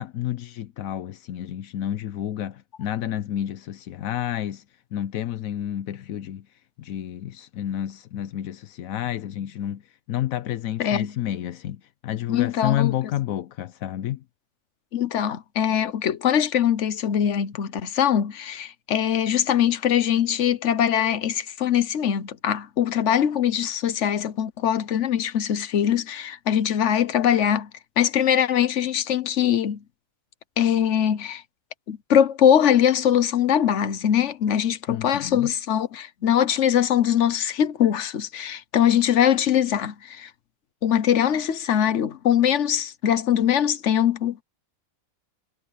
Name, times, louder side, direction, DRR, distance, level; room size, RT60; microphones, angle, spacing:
voice 1, 0.0-4.6 4.9-6.5 6.8-9.8 10.1-14.2 34.9-35.5, left 12 dB, 80° left, 1.1 m, -30 dB
voice 2, 10.8-11.1 12.3-12.9 14.9-27.7 28.0-29.8 30.6-31.4 31.9-40.3 40.8-44.4, left 9 dB, 60° left, 1.3 m, -22 dB
omnidirectional pair, 1.4 m